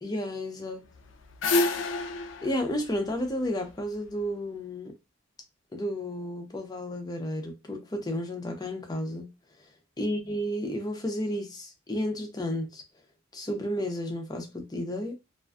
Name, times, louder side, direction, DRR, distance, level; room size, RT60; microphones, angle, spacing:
voice 1, 0.0-0.8 2.4-4.9 5.7-9.3 10.0-12.8 13.3-15.1, equal, 20° left, 0.5 m, -32 dB
sound 1, 0.9-4.1, left 2 dB, 75° left, 0.4 m, -29 dB
2.4 x 2.3 x 2.3 m
head